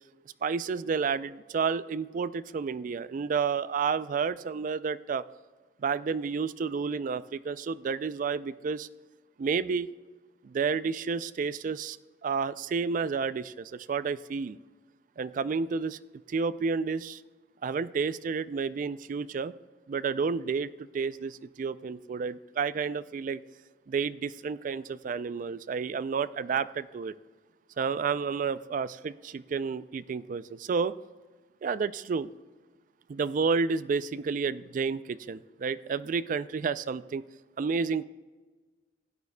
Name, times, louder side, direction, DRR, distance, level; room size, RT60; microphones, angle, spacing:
voice 1, 0.4-5.2 5.8-8.9 9.4-9.9 10.4-12.0 12.2-14.6 15.2-16.0 16.3-17.2 17.6-19.5 19.9-23.4 23.9-27.1 27.8-30.9 31.6-32.3 33.1-37.2 37.6-38.0, right 5 dB, 45° right, 16 dB, 0.3 m, -30 dB
16.0 x 9.4 x 2.2 m, 1.3 s
head